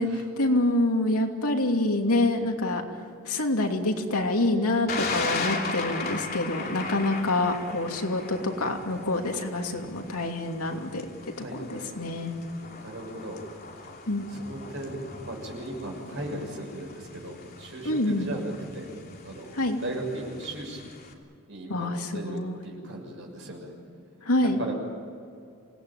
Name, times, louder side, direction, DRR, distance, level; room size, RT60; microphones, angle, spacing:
voice 1, 0.0-2.8 3.2-11.1 11.5-12.3 14.1-14.3 17.8-18.3 19.5-19.8 21.7-22.7 24.2-24.6, left 2 dB, 90° left, 2 dB, 2.9 m, -26 dB
Thunder, 4.9-21.1, left 4 dB, 40° left, 2.9 m, -38 dB
voice 2, 11.4-11.9 12.8-13.4 14.3-18.9 19.2-20.9 21.5-23.7 24.4-24.7, right 1 dB, 55° right, 1 dB, 6.6 m, -37 dB
27.5 x 18.5 x 9.1 m, 2.4 s
head